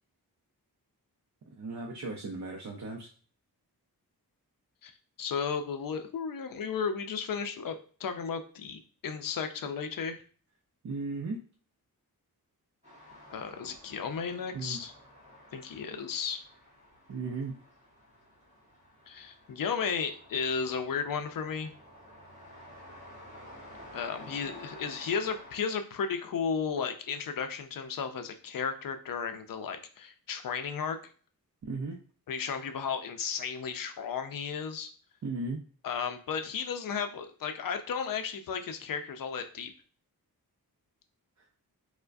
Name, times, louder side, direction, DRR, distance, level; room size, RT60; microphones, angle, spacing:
voice 1, 1.5-3.1 10.8-11.4 14.5-14.8 17.1-17.6 31.6-32.0 35.2-35.6 41.4-41.5, right 3 dB, 50° right, 0 dB, 0.5 m, -36 dB
voice 2, 5.2-10.2 13.3-14.9 15.5-16.4 19.1-21.7 23.9-31.1 32.3-34.9 35.8-39.7, left 6 dB, 65° left, 8 dB, 0.5 m, -34 dB
sound 1, 12.8-25.6, left 1 dB, 20° right, 1.4 m, -52 dB
4.5 x 2.1 x 2.5 m, 0.42 s
wide cardioid pair, 145°, 37 cm